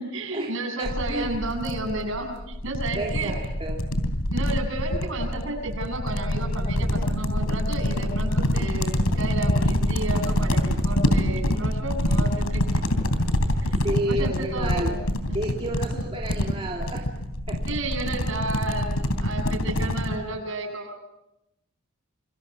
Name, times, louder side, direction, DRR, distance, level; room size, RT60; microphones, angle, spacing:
voice 1, 0.0-3.3 4.3-12.8 13.6-13.8 14.1-15.0 17.7-21.0, right 2 dB, 60° right, 2 dB, 7.7 m, -32 dB
sound 1, 0.8-20.2, left 1 dB, 85° left, 3.2 m, -26 dB
voice 2, 0.8-1.4 2.9-3.8 13.8-15.0 15.3-17.1 17.5-17.7 19.8-19.9, right 1 dB, 25° right, -2 dB, 2.7 m, -31 dB
27.5 x 25.0 x 6.0 m, 0.88 s
head